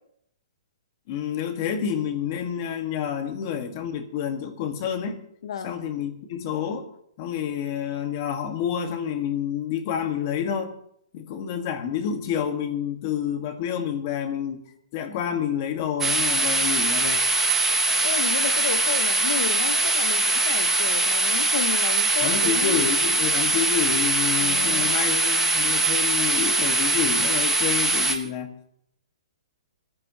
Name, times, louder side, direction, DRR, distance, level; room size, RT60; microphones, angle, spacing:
voice 1, 1.1-5.2 5.6-6.9 7.2-10.8 11.1-14.6 14.9-17.2 22.2-28.7, left 8 dB, 30° left, 7 dB, 1.4 m, -28 dB
voice 2, 5.4-5.8 18.0-22.8 24.4-24.9, left 7 dB, 55° left, 10 dB, 0.7 m, -32 dB
sound 1, 16.0-28.2, right 2 dB, 10° right, 0.7 m, -22 dB
22.5 x 14.5 x 2.8 m, 0.71 s
hypercardioid pair, 175°, 3 cm